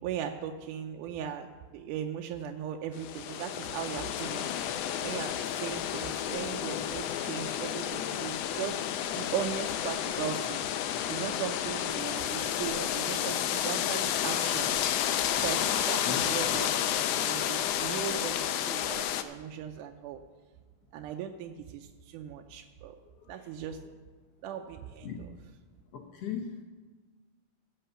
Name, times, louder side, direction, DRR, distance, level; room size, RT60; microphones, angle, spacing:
voice 1, 0.0-4.5 5.0-8.8 9.1-10.6 11.1-14.9 15.4-20.2 20.9-23.0 23.3-23.8 24.4-25.3, right 9 dB, 90° right, 4 dB, 2.2 m, -38 dB
sound 1, 3.0-19.2, left 10 dB, 85° left, 1.4 m, -31 dB
voice 2, 25.9-26.6, left 7 dB, 65° left, 1 dB, 1.8 m, -37 dB
16.0 x 5.6 x 6.7 m, 1.3 s
omnidirectional pair, 3.5 m